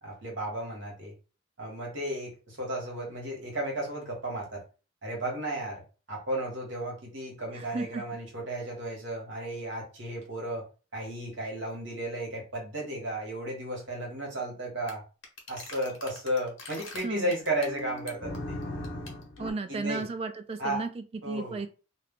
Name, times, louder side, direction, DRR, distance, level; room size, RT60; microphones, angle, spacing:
voice 1, 0.0-1.1 1.6-4.6 5.0-5.8 6.1-10.7 10.9-15.0 15.5-18.6 19.7-20.1 20.6-20.8 21.2-21.6, right 1 dB, 65° right, -1 dB, 1.2 m, -34 dB
voice 2, 7.5-8.0 17.0-17.3 19.4-21.7, right 3 dB, 30° right, 9 dB, 0.3 m, -34 dB
sound 1, 14.9-15.0 15.2-19.5, left 1 dB, 70° left, 0.9 m, -39 dB
2.3 x 2.3 x 3.6 m, 0.34 s
head